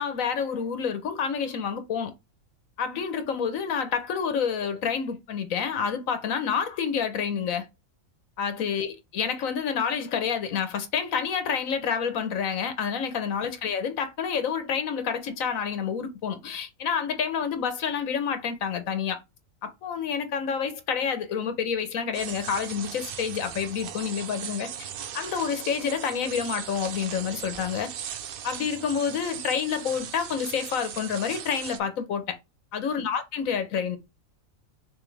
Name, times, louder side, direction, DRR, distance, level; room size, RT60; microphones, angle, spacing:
voice 1, 0.0-2.1 2.8-7.7 8.4-19.2 19.6-24.7 25.1-27.9 28.4-32.4 32.7-34.0, left 7 dB, 75° left, 1.3 m, -28 dB
sound 1, 22.1-31.8, right 9 dB, 70° right, 0.5 m, -38 dB
6.0 x 2.7 x 3.2 m
omnidirectional pair, 1.4 m